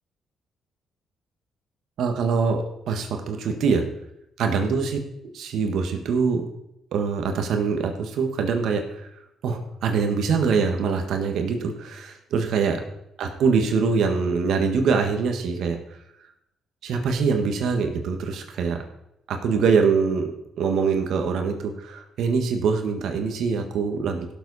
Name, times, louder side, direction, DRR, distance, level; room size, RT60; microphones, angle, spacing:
voice 1, 2.0-3.9 4.4-5.0 5.3-6.5 6.9-9.1 9.4-12.8 13.2-15.8 16.8-18.8 19.3-24.3, right 5 dB, 75° right, 6 dB, 1.6 m, -24 dB
17.0 x 7.2 x 4.2 m, 0.82 s
cardioid pair, 90°, 0 cm